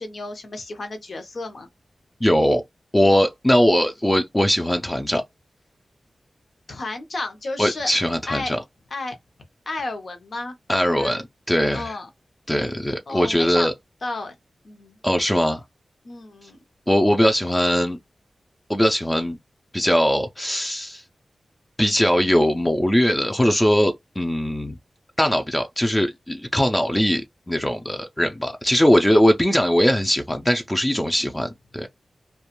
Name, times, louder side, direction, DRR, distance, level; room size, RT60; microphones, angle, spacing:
voice 1, 0.0-1.7 6.7-7.9 8.3-8.6 8.9-9.2 9.7-11.2 11.7-12.1 13.1-13.7 14.0-14.3 14.6-15.0 16.0-16.6, left 2 dB, 65° left, 0.7 m, -32 dB
voice 2, 2.2-2.6 2.9-5.2 7.6-8.6 10.7-11.9 12.5-13.7 15.0-15.6 16.9-18.0 18.7-19.4 19.7-21.0 21.8-24.8 25.2-31.9, equal, 15° left, 0.4 m, -20 dB
2.4 x 2.2 x 2.9 m
wide cardioid pair, 65°, 0 cm